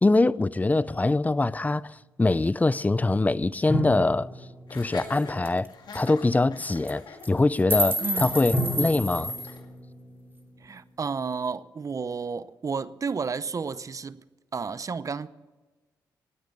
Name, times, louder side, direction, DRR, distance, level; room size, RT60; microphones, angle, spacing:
voice 1, 0.0-4.3 4.7-5.7 5.9-9.3, left 2 dB, 20° left, 0.5 m, -23 dB
sound 1, 3.7-6.1 8.5-11.6, equal, ahead, 4.6 m, -35 dB
Laughter, 4.7-9.7, left 4 dB, 65° left, 2.4 m, -44 dB
sound 2, 4.8-4.9 5.2-5.3 5.5-5.7 5.9-6.1 6.7-6.9 7.2-9.6, equal, 30° right, 2.7 m, -29 dB
voice 2, 8.0-8.4 10.6-14.2 14.5-15.3, right 5 dB, 45° right, 0.7 m, -32 dB
18.5 x 9.3 x 6.8 m
cardioid pair, 60°, 8 cm